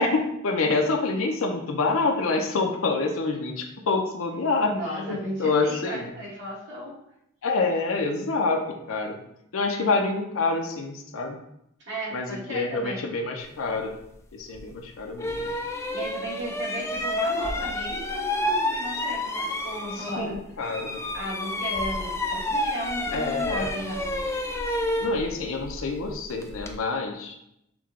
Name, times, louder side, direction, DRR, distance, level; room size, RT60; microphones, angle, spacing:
voice 1, 0.0-4.7 5.4-6.1 7.4-8.6 8.9-9.2 9.5-11.4 12.1-13.9 14.3-15.5 20.0-21.0 23.1-23.7 25.0-27.4, left 3 dB, 80° left, 3 dB, 0.6 m, -27 dB
voice 2, 4.7-6.9 11.9-13.0 14.7-14.8 15.5-20.4 21.1-24.3, right 1 dB, 60° right, -5 dB, 1.6 m, -35 dB
sound 1, 14.5-14.7 15.2-20.3 20.6-26.8, left 1 dB, 15° left, 0.3 m, -29 dB
6.0 x 2.3 x 3.6 m, 0.78 s
head